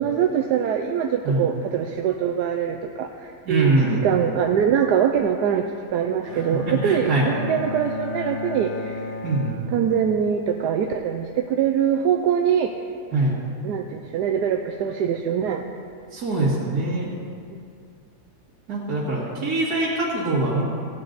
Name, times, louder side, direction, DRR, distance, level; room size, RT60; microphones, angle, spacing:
voice 1, 0.0-9.1 9.7-12.7 13.6-15.6 17.5-17.6, right 8 dB, 85° right, 3 dB, 1.2 m, -23 dB
voice 2, 3.5-4.1 6.7-7.3 9.2-9.6 13.1-13.3 16.1-17.1 18.7-20.6, right 2 dB, 70° right, -8 dB, 2.4 m, -23 dB
Bowed string instrument, 6.2-10.3, left 3 dB, 55° left, 1.7 m, -33 dB
16.0 x 8.7 x 3.9 m, 2.3 s
omnidirectional pair, 1.7 m